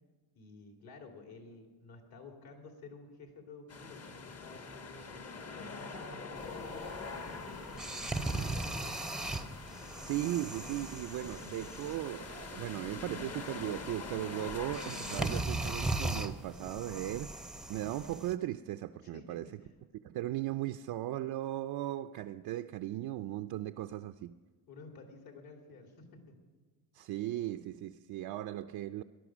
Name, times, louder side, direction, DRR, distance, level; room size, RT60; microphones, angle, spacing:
voice 1, 0.3-5.2 5.5-8.8 19.0-19.5 24.7-26.4, left 3 dB, 60° left, 3.0 m, -52 dB
sound 1, 3.7-15.4, left 4 dB, 35° left, 1.2 m, -45 dB
sound 2, 6.4-18.3, right 2 dB, ahead, 0.6 m, -39 dB
voice 2, 10.0-19.4 20.0-24.3 26.9-29.0, right 14 dB, 60° right, 0.5 m, -37 dB
18.5 x 11.5 x 6.1 m
cardioid pair, 140°, 41 cm